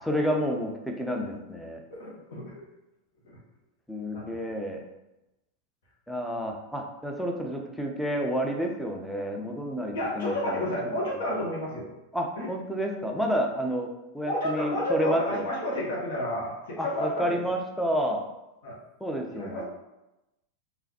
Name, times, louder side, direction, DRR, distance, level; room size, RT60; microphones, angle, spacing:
voice 1, 0.1-1.8 3.9-4.8 6.1-10.9 11.3-11.5 12.1-13.9 14.1-15.5 16.8-18.2 19.0-19.6, equal, ahead, 1 dB, 0.6 m, -30 dB
voice 2, 1.9-2.6 3.2-3.4 4.1-4.4 9.9-11.9 12.3-12.5 14.2-17.5 18.6-18.8 19.3-19.6, left 1 dB, 60° left, -4 dB, 1.3 m, -31 dB
3.9 x 3.0 x 2.8 m, 0.96 s
figure-of-eight pair, 90°, 0 cm